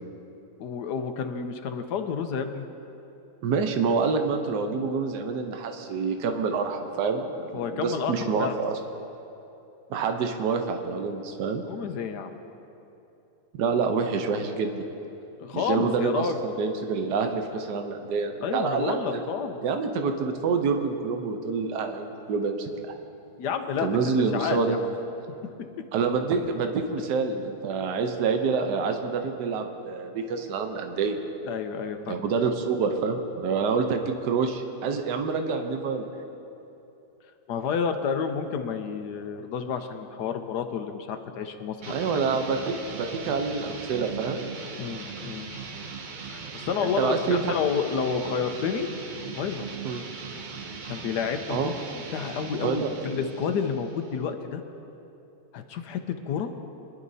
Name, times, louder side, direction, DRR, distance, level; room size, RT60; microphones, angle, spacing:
voice 1, 0.6-2.7 7.5-8.6 11.7-12.4 15.4-16.4 18.4-19.6 23.4-23.9 24.3-24.9 31.5-32.3 37.5-42.1 44.8-45.5 46.3-48.9 49.3-49.7 50.9-54.6 55.5-56.0 56.3-56.5, left 6 dB, 75° left, 7 dB, 1.3 m, -30 dB
voice 2, 3.4-8.7 9.9-11.6 13.6-14.9 15.5-19.2 19.6-22.9 23.8-24.8 25.9-31.2 32.1-36.1 41.9-44.4 46.8-47.5 49.8-50.0 51.5-51.7 52.6-53.2, right 5 dB, 75° right, 5 dB, 1.4 m, -27 dB
sound 1, 41.8-54.3, right 5 dB, 60° right, 0.5 m, -39 dB
23.0 x 11.0 x 2.7 m, 2.9 s
omnidirectional pair, 1.8 m